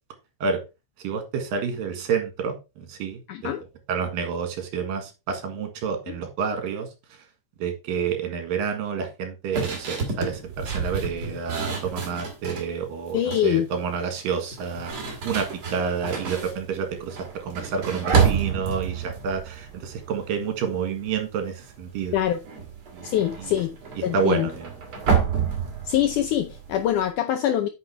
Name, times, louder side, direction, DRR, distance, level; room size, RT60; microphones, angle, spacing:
voice 1, 1.0-3.6 3.9-6.9 7.6-22.1 22.9-23.1 23.4-23.5 24.0-24.7, right 6 dB, 70° right, 3.3 m, -29 dB
voice 2, 3.3-3.6 6.1-6.2 13.1-13.7 22.1-22.4 23.0-23.7 24.0-24.5 25.9-27.7, left 11 dB, 80° left, 1.8 m, -24 dB
sound 1, 9.5-12.7 13.1-13.6 14.4-20.7 21.0-21.3 21.6-27.1, right 6 dB, 40° right, 2.6 m, -29 dB
9.3 x 6.1 x 3.5 m
omnidirectional pair, 4.4 m